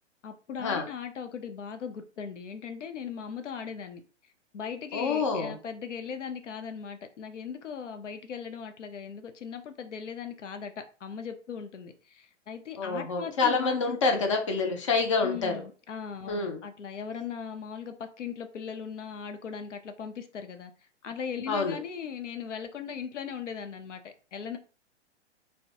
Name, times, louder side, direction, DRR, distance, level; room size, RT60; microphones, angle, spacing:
voice 1, 0.2-4.0 4.5-14.3 15.2-20.7 21.0-24.6, left 7 dB, 80° left, 0.5 m, -38 dB
voice 2, 4.9-5.6 12.8-15.6 16.3-16.6 21.5-21.8, left 4 dB, 30° left, 0.4 m, -27 dB
2.5 x 2.1 x 2.7 m
figure-of-eight pair, 110°, 36 cm